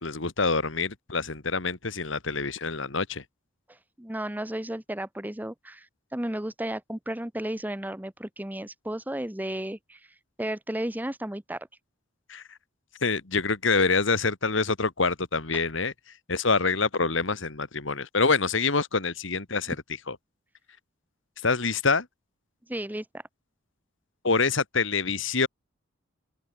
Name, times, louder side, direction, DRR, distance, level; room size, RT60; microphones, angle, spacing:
voice 1, 0.0-3.2 12.3-12.4 13.0-15.9 16.3-19.8 20.1-20.2 21.4-22.1 24.2-25.5, left 4 dB, 65° left, 1.8 m, -26 dB
voice 2, 3.7-5.9 6.1-10.0 10.4-11.7 15.5-15.6 22.7-23.0, right 1 dB, 10° right, 0.9 m, -33 dB
open air
head